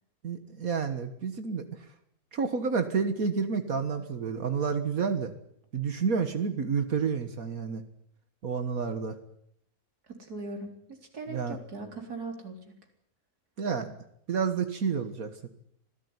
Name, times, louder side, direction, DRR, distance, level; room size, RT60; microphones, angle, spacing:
voice 1, 0.2-1.7 2.3-5.3 5.7-7.8 8.4-9.2 11.3-11.6 13.6-14.0 14.3-15.5, right 5 dB, 65° right, 8 dB, 2.0 m, -29 dB
voice 2, 10.1-10.8 11.1-12.7, right 3 dB, 90° right, 4 dB, 4.3 m, -39 dB
25.5 x 17.0 x 9.6 m, 0.73 s
omnidirectional pair, 1.6 m